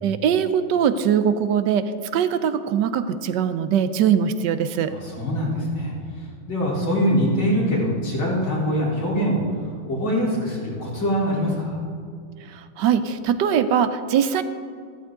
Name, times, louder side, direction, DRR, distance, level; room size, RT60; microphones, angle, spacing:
voice 1, 0.0-1.8 2.1-4.9 12.8-14.4, right 8 dB, 70° right, 11 dB, 1.2 m, -21 dB
voice 2, 4.9-5.9 6.5-9.4 9.9-11.8, equal, 90° left, -6 dB, 4.9 m, -23 dB
14.5 x 13.0 x 3.8 m, 2.3 s
omnidirectional pair, 2.1 m